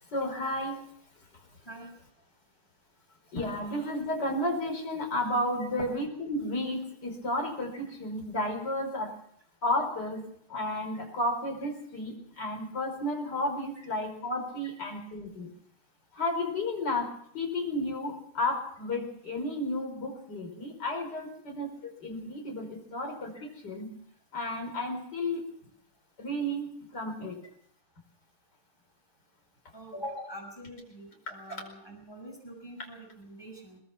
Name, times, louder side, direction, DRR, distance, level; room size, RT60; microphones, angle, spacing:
voice 1, 0.1-0.8 3.3-9.1 9.6-10.2 10.5-15.5 16.1-23.9 24.3-25.4 26.2-27.4 31.3-31.4, left 1 dB, 50° left, 3 dB, 5.5 m, -32 dB
voice 2, 29.7-33.8, equal, 10° left, 2 dB, 6.2 m, -44 dB
22.0 x 20.5 x 6.0 m, 0.66 s
omnidirectional pair, 2.4 m